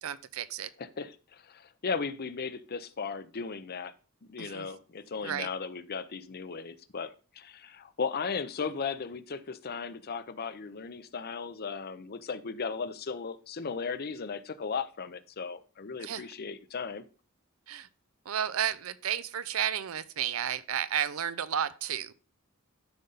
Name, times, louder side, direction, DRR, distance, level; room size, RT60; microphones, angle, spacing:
voice 1, 0.0-0.7 4.4-4.6 5.2-5.5 16.0-16.2 17.7-17.9 18.3-22.1, right 9 dB, 70° right, 0.6 m, -32 dB
voice 2, 0.6-3.9 4.3-17.0, left 5 dB, 45° left, 0.6 m, -36 dB
12.0 x 5.3 x 4.0 m
head